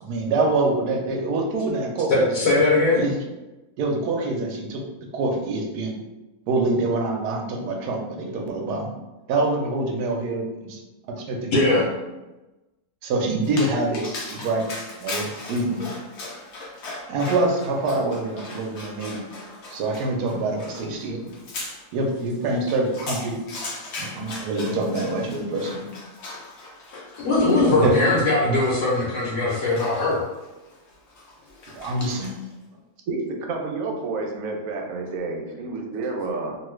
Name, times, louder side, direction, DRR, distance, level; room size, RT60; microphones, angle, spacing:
voice 1, 0.0-2.5 2.9-3.1 3.8-4.8 5.1-5.9 6.5-8.9 9.3-10.8 11.1-11.9 13.0-14.6 15.0-15.9 17.1-19.2 19.7-21.3 21.9-23.4 24.0-25.8 27.8-27.9 31.7-32.3, right 2 dB, 85° right, 1 dB, 1.2 m, -25 dB
voice 2, 2.1-3.1 11.5-11.8 27.2-30.2, left 2 dB, 80° left, -8 dB, 1.3 m, -20 dB
Dog, 13.4-32.5, left 2 dB, 55° left, 0.8 m, -39 dB
voice 3, 33.1-36.6, right 3 dB, 70° right, 1 dB, 0.9 m, -29 dB
2.9 x 2.3 x 3.1 m, 1.1 s
omnidirectional pair, 1.6 m